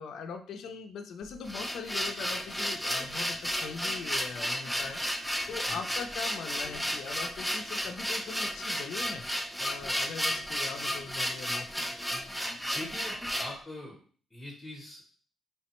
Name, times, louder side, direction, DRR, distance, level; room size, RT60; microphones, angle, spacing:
voice 1, 0.0-12.3, left 5 dB, 70° left, 7 dB, 0.4 m, -41 dB
sound 1, 1.2-13.6, equal, ahead, 0.3 m, -33 dB
voice 2, 12.7-14.0 14.3-15.0, left 1 dB, 20° left, -2 dB, 0.8 m, -42 dB
3.2 x 2.1 x 2.9 m, 0.43 s
cardioid pair, 90°, 0 cm